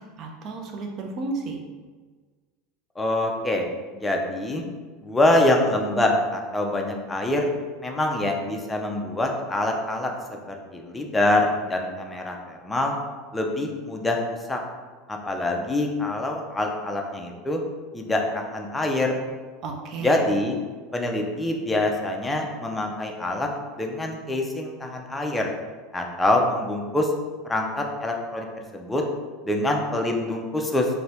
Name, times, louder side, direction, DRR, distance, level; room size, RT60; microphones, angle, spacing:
voice 1, 0.0-1.6 19.6-20.2, right 3 dB, 45° right, 3 dB, 0.5 m, -33 dB
voice 2, 3.0-3.7 3.9-4.6 5.0-7.5 7.8-10.1 10.5-13.0 13.3-14.6 15.1-17.6 17.9-19.2 20.0-20.6 20.9-23.5 23.8-25.5 25.9-27.1 27.5-28.5 28.7-29.0 29.4-30.9, left 1 dB, 10° left, 1 dB, 0.4 m, -25 dB
2.7 x 2.7 x 3.3 m, 1.4 s
supercardioid pair, 125°, 0 cm